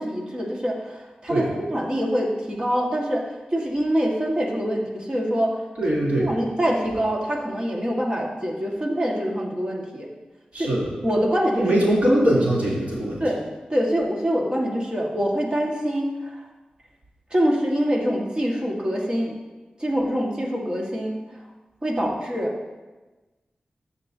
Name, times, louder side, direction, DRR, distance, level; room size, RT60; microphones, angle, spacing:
voice 1, 0.0-3.2 3.5-5.6 6.2-10.1 10.6-10.7 11.0-11.7 13.2-13.4 13.7-16.4 17.3-19.3 19.8-21.2 21.8-22.6, equal, 35° right, -1 dB, 1.7 m, -25 dB
voice 2, 5.8-6.3 10.5-10.9 11.6-13.2, right 1 dB, 65° right, -6 dB, 3.1 m, -21 dB
13.5 x 6.6 x 2.8 m, 1.2 s
wide cardioid pair, 90°, 3 cm